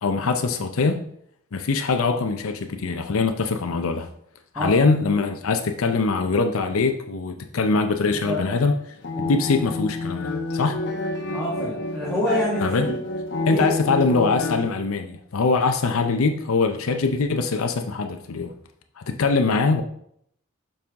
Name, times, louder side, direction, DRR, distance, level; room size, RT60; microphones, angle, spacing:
voice 1, 0.0-1.0 1.5-4.1 4.5-8.7 9.2-10.8 12.6-12.9 13.5-18.5 19.0-19.8, left 4 dB, 85° left, 0.6 m, -22 dB
voice 2, 4.5-4.9 8.1-8.4 9.1-9.3 10.8-10.9 11.3-13.0 13.5-13.7, left 1 dB, ahead, 1.7 m, -27 dB
sound 1, 8.9-14.7, left 2 dB, 60° left, 1.0 m, -29 dB
6.9 x 5.5 x 3.6 m
head